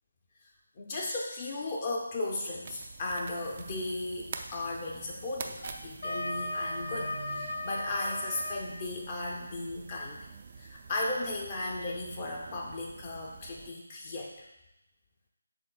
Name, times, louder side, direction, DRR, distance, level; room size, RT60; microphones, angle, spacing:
voice 1, 0.8-10.2 10.6-14.3, left 2 dB, 35° left, -2 dB, 0.7 m, -36 dB
sound 1, 2.6-13.7, right 5 dB, 40° right, 0.4 m, -47 dB
sound 2, 3.6-9.1, right 2 dB, 85° right, 1.0 m, -51 dB
Wind instrument woodwind instrument, 5.6-8.6, left 1 dB, 75° left, 1.0 m, -36 dB
6.5 x 3.5 x 2.3 m, 0.90 s
figure-of-eight pair, 155°, 0 cm